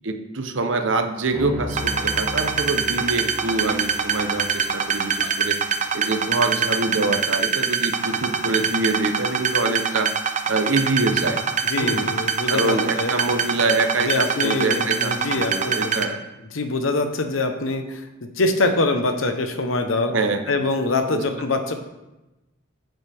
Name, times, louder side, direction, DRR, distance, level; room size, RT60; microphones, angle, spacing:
voice 1, 0.0-5.6 5.9-10.1 10.5-11.4 11.8-12.1 12.5-16.2 20.1-20.6 21.1-21.2, right 3 dB, 70° right, 7 dB, 0.9 m, -25 dB
sound 1, 1.3-9.7, left 1 dB, 15° right, 2.6 m, -38 dB
sound 2, 1.7-16.0, right 6 dB, 40° right, 0.7 m, -23 dB
voice 2, 11.6-13.1 14.0-16.2 16.5-18.1 18.4-20.1 20.5-21.7, left 2 dB, 85° left, 6 dB, 1.0 m, -24 dB
9.2 x 7.9 x 3.5 m, 1.0 s
head